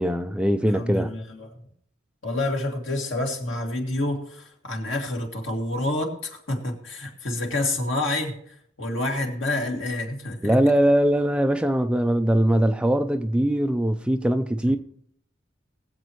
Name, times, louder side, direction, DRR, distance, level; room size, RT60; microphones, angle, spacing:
voice 1, 0.0-1.1 10.4-14.8, right 1 dB, 5° right, 0.4 m, -21 dB
voice 2, 0.7-1.7 2.2-10.6 14.6-14.7, left 2 dB, 85° left, 2.3 m, -28 dB
21.5 x 7.9 x 3.1 m
head